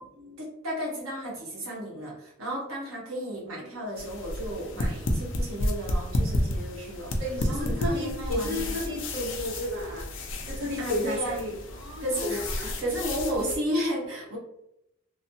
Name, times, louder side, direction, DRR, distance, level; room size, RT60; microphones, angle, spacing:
voice 1, 0.4-7.1 7.5-8.8 10.8-11.4 12.0-14.4, equal, 85° right, -4 dB, 1.2 m, -33 dB
sound 1, 4.0-13.6, left 1 dB, 65° left, 0.5 m, -31 dB
voice 2, 7.2-10.1 10.5-12.8, left 1 dB, 55° right, -3 dB, 0.8 m, -32 dB
3.1 x 2.0 x 2.8 m, 0.81 s
head